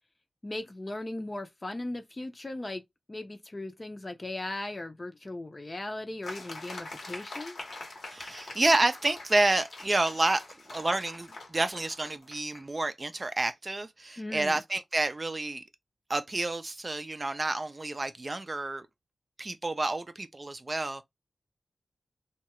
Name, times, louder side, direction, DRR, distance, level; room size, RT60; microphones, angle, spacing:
voice 1, 0.4-2.8 3.1-7.6 14.2-14.6, left 2 dB, 30° left, 0.6 m, -38 dB
sound 1, 6.2-12.6, left 2 dB, 90° left, 1.0 m, -44 dB
voice 2, 8.1-15.6 16.1-18.9 19.4-21.0, right 2 dB, 35° right, 0.4 m, -29 dB
2.8 x 2.3 x 2.9 m
wide cardioid pair, 80°, 0 cm